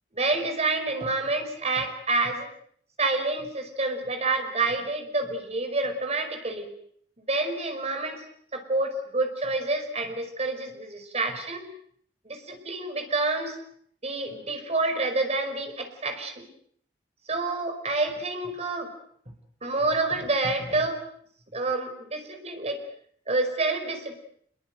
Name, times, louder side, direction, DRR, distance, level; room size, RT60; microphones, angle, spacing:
voice 1, 0.1-2.5 3.0-6.7 7.3-8.2 8.5-11.7 12.3-13.6 14.0-16.5 17.3-18.9 19.6-21.0 21.5-22.8 23.3-24.1, right 2 dB, 40° right, 6 dB, 5.3 m, -28 dB
26.5 x 22.5 x 7.9 m, 0.65 s
head